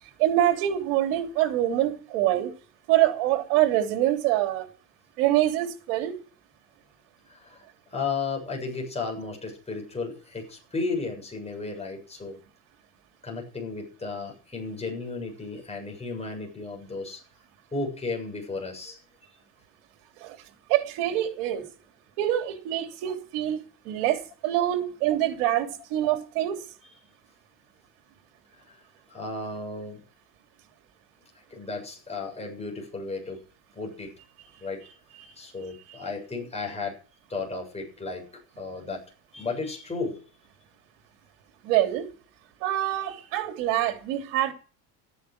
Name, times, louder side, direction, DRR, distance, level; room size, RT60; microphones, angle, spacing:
voice 1, 0.2-2.5 2.9-4.6 5.2-6.2 20.2-20.4 20.7-21.7 22.2-26.6 35.2-35.3 35.9-36.0 41.6-42.1 42.6-44.5, right 13 dB, 75° right, 3.4 m, -25 dB
voice 2, 7.3-12.4 13.2-17.2 17.7-19.0 28.5-28.8 29.1-30.0 31.5-33.4 33.8-34.1 34.6-34.8 35.4-37.0 37.3-38.2 38.6-39.0 39.3-40.2, left 3 dB, 15° left, 7.3 m, -34 dB
14.5 x 10.0 x 6.5 m
supercardioid pair, 120°, 45 cm